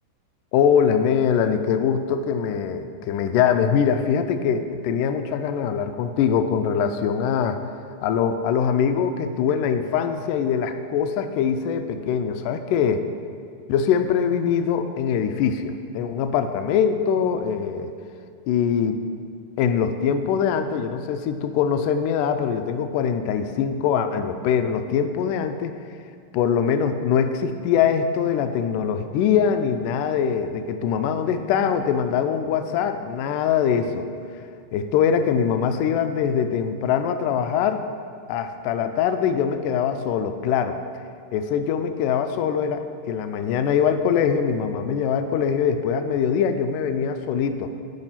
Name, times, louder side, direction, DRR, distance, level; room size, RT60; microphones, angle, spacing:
voice 1, 0.5-7.6 8.0-13.1 13.7-17.9 18.5-19.0 19.6-25.7 26.3-34.1 34.7-37.8 38.3-40.8 41.3-47.7, left 7 dB, 80° left, 9 dB, 1.9 m, -23 dB
9.6 x 4.8 x 5.7 m, 2.3 s
omnidirectional pair, 4.0 m